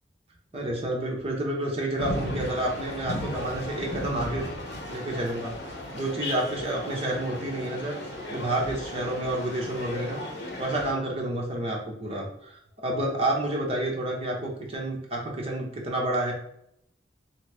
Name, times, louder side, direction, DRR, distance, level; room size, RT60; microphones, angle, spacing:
voice 1, 0.5-4.5 4.9-8.0 8.3-10.2 10.6-16.3, right 1 dB, 35° right, -1 dB, 0.9 m, -29 dB
sound 1, 2.0-10.9, left 1 dB, 70° left, 0.9 m, -35 dB
3.5 x 3.1 x 3.2 m, 0.76 s
head